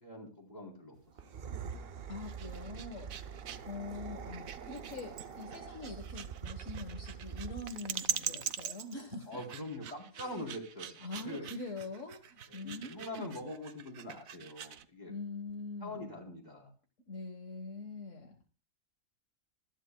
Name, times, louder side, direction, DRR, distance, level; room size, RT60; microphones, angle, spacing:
voice 1, 0.0-1.0 1.2-1.4 3.3-3.6 9.3-11.5 12.5-15.1 15.8-16.7, left 1 dB, 30° left, 0 dB, 3.9 m, -44 dB
sound 1, 1.1-7.9, right 7 dB, 50° right, 0.8 m, -45 dB
voice 2, 2.1-3.1 3.7-9.4 10.2-10.4 11.0-13.5 15.1-16.1 17.1-18.5, left 3 dB, 60° left, 3 dB, 1.8 m, -44 dB
sound 2, 2.2-14.8, right 8 dB, 70° right, 1.2 m, -43 dB
25.0 x 10.5 x 2.3 m, 0.36 s
omnidirectional pair, 1.5 m